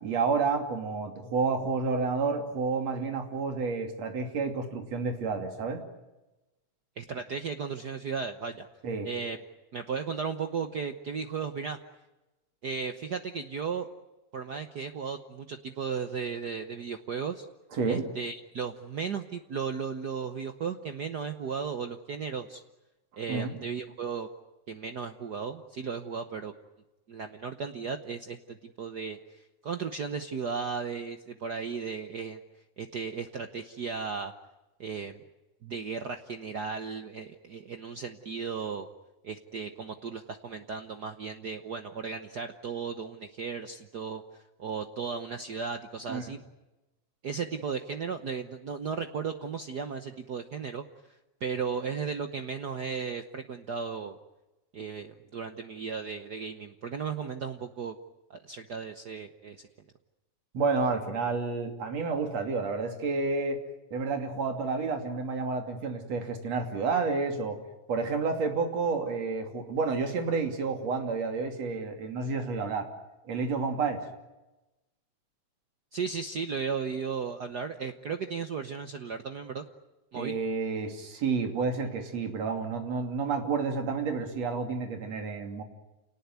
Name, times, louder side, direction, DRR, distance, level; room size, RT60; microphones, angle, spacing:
voice 1, 0.0-5.8 8.8-9.1 17.7-18.0 23.3-23.6 46.1-46.3 60.5-63.6 63.9-67.6 67.9-72.9 73.2-74.1 80.1-85.6, right 4 dB, 60° right, 4 dB, 3.9 m, -30 dB
voice 2, 7.0-8.7 9.0-9.4 9.7-11.8 12.6-13.9 14.3-17.5 17.9-22.6 23.2-24.3 24.7-26.5 27.1-32.4 32.8-34.3 34.8-35.2 35.6-38.9 39.2-46.4 47.2-54.2 54.7-57.9 58.3-59.6 75.9-79.6 80.1-80.3, right 6 dB, 80° right, 7 dB, 0.9 m, -35 dB
29.0 x 19.0 x 9.4 m, 1.0 s
omnidirectional pair, 3.4 m